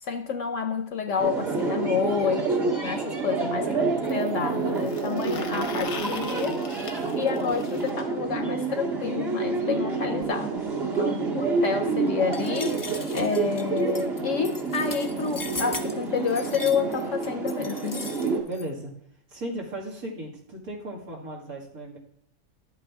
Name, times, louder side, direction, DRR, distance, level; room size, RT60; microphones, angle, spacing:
voice 1, 0.0-6.6 7.2-10.5 10.9-12.7 13.1-18.1, left 6 dB, 65° left, 6 dB, 1.0 m, -29 dB
sound 1, 1.2-18.4, right 4 dB, 45° right, 2.3 m, -28 dB
sound 2, 2.0-2.1 4.0-7.9 9.8-9.9 10.2-10.3 10.6-10.7 11.6-11.7, left 7 dB, 85° left, 1.4 m, -42 dB
voice 2, 3.6-4.0 4.6-4.9 11.1-11.5 18.4-18.9 19.3-22.0, right 1 dB, 75° right, -1 dB, 2.6 m, -36 dB
sound 3, 12.3-18.7, left 3 dB, 30° left, 0.4 m, -39 dB
12.0 x 8.2 x 3.6 m, 0.67 s
omnidirectional pair, 1.5 m